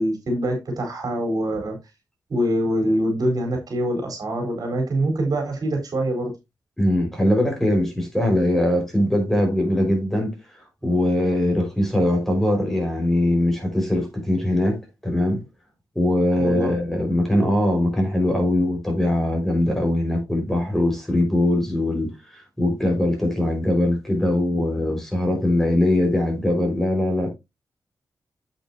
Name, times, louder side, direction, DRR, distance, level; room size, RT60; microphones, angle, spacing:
voice 1, 0.0-1.8 2.3-6.3 16.4-16.8, right 1 dB, 65° right, 4.5 m, -24 dB
voice 2, 6.8-10.4 10.8-15.4 16.0-27.3, left 1 dB, 5° left, 5.5 m, -21 dB
9.0 x 8.4 x 2.9 m
wide cardioid pair, 105°, 7 cm